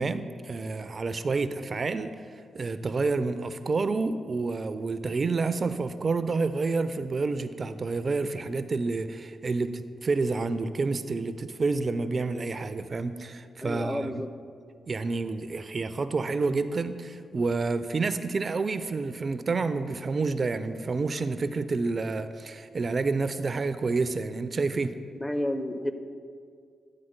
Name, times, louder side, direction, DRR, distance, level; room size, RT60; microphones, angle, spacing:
voice 1, 0.0-2.2 2.5-14.3 14.9-25.0, right 3 dB, 50° right, 12 dB, 0.3 m, -29 dB
voice 2, 13.6-14.3 25.2-25.9, left 1 dB, 25° left, 10 dB, 0.6 m, -30 dB
9.9 x 3.8 x 5.1 m, 2.2 s
hypercardioid pair, 40°, 0 cm